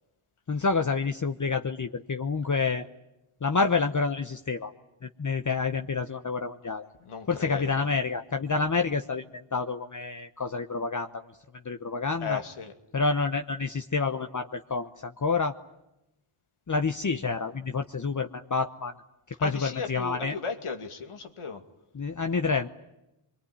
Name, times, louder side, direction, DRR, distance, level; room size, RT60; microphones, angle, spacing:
voice 1, 0.5-2.9 3.4-4.7 5.2-6.9 7.3-9.2 9.5-11.2 11.6-12.4 12.9-15.5 16.7-18.9 19.4-20.4 21.9-22.7, left 4 dB, 35° left, 7 dB, 1.1 m, -28 dB
voice 2, 7.0-7.9 12.2-12.7 19.4-21.6, left 5 dB, 85° left, 6 dB, 2.5 m, -35 dB
25.0 x 22.5 x 9.9 m, 0.93 s
wide cardioid pair, 75°, 50 cm